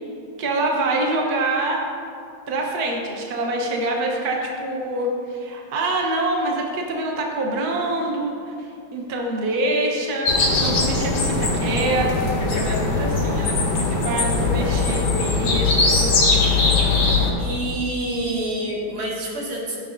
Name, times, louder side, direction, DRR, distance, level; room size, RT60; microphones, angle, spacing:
voice 1, 0.4-1.8 2.5-8.5 8.9-16.1, right 2 dB, 65° right, 0 dB, 0.9 m, -25 dB
sound 1, 10.2-17.3, left 3 dB, 65° left, 3.1 m, -20 dB
voice 2, 17.4-19.8, right 1 dB, 50° right, -4 dB, 2.7 m, -27 dB
14.5 x 10.5 x 2.7 m, 2.4 s
omnidirectional pair, 3.4 m